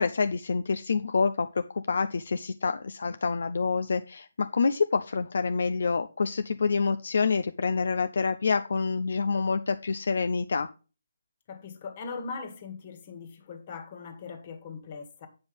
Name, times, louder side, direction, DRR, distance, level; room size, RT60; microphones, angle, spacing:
voice 1, 0.0-10.7, left 4 dB, 65° left, 0.5 m, -27 dB
voice 2, 11.5-15.3, left 5 dB, 35° left, 1.7 m, -40 dB
9.0 x 5.2 x 5.2 m
figure-of-eight pair, 155°, 0 cm